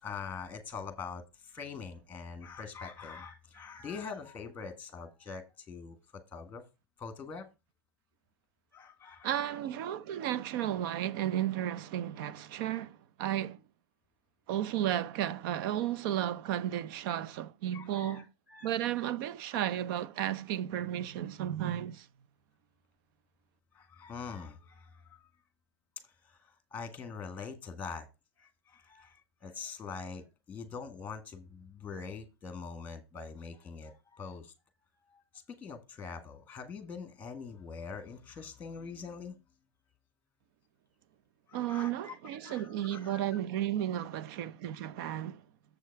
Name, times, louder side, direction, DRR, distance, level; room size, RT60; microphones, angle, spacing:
voice 1, 0.0-1.2 1.5-6.0 6.3-6.6 7.0-7.5 8.7-9.5 17.7-18.7 23.7-25.2 26.2-26.4 26.7-28.1 28.4-34.5 35.1-35.2 35.5-39.3 41.5-43.3, left 5 dB, 10° left, 1.8 m, -44 dB
voice 2, 9.2-13.6 14.5-18.2 18.6-22.1 41.5-45.4, right 11 dB, 50° right, 0.7 m, -33 dB
7.2 x 6.4 x 4.7 m
supercardioid pair, 140°, 14 cm